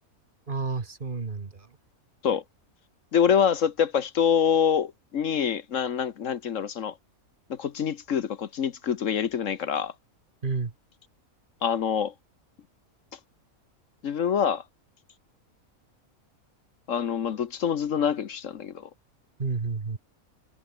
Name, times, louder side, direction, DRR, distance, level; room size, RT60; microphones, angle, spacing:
voice 1, 0.5-1.7 10.4-10.7 19.4-20.0, right 4 dB, 35° right, 1.6 m, -30 dB
voice 2, 3.1-7.0 7.5-9.9 11.6-12.1 14.0-14.6 16.9-18.9, left 7 dB, 60° left, 1.3 m, -25 dB
omnidirectional pair, 1.5 m